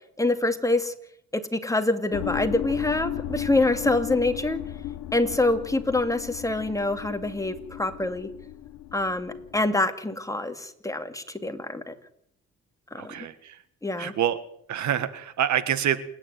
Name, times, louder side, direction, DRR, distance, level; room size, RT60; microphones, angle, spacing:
voice 1, 0.2-0.9 1.3-4.6 5.1-8.3 8.9-11.9 12.9-13.1 13.8-14.1, left 2 dB, 10° left, 7 dB, 2.3 m, -26 dB
sound 1, 2.1-9.6, left 12 dB, 85° left, 1.3 m, -35 dB
voice 2, 12.9-13.6 14.0-14.4 14.7-16.0, right 10 dB, 70° right, 13 dB, 1.6 m, -26 dB
28.0 x 9.9 x 9.4 m, 0.70 s
cardioid pair, 90°, 30 cm